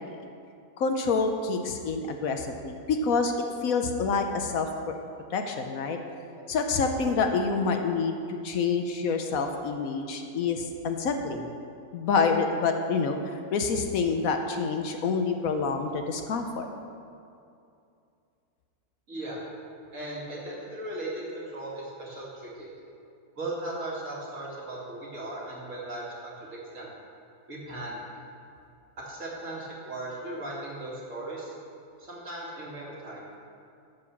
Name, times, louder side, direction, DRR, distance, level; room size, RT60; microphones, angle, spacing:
voice 1, 0.8-3.3 3.6-4.9 5.3-6.0 6.5-11.5 11.9-13.2 13.5-16.7, left 4 dB, 70° left, 5 dB, 1.1 m, -27 dB
voice 2, 19.1-19.4 19.9-22.7 23.4-26.4 26.7-26.9 27.5-28.0 29.1-31.5 32.0-33.3, right 1 dB, 55° right, -5 dB, 2.5 m, -37 dB
13.0 x 4.8 x 7.1 m, 2.5 s
omnidirectional pair, 1.6 m